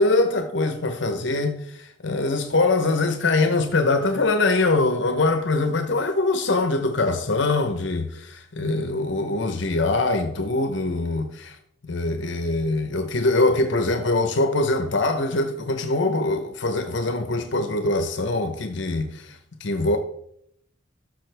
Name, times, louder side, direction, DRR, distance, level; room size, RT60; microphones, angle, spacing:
voice 1, 0.0-11.6 11.8-20.0, left 2 dB, 65° left, 0.8 m, -23 dB
12.5 x 6.3 x 3.4 m
head